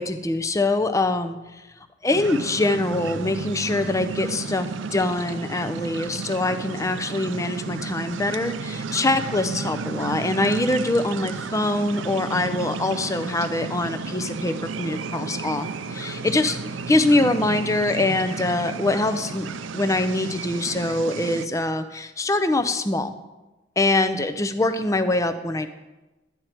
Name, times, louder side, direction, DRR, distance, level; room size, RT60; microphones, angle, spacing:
voice 1, 0.0-1.6 2.0-16.6 16.9-19.5 19.7-23.1 23.8-25.7, left 2 dB, 15° left, 9 dB, 0.6 m, -24 dB
sound 1, 2.1-21.5, right 4 dB, 80° right, 0.5 m, -33 dB
12.5 x 9.4 x 4.5 m, 1.1 s
head